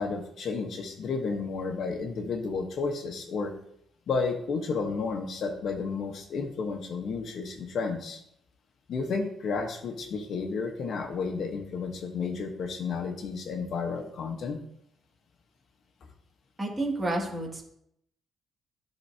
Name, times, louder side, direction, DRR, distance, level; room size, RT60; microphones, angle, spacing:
voice 1, 0.0-3.5 4.1-8.2 8.9-14.6, left 4 dB, 65° left, 5 dB, 1.3 m, -32 dB
voice 2, 16.6-17.6, right 2 dB, 20° right, -1 dB, 2.3 m, -30 dB
11.5 x 4.2 x 2.9 m, 0.73 s
cardioid pair, 90°, 0 cm